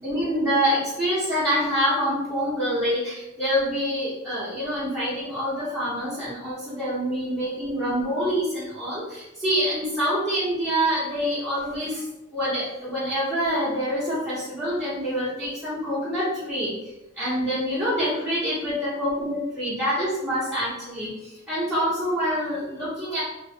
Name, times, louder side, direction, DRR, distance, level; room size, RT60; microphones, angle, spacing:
voice 1, 0.0-12.1 12.3-23.2, equal, 10° right, -12 dB, 0.9 m, -26 dB
2.6 x 2.2 x 3.4 m, 0.95 s
head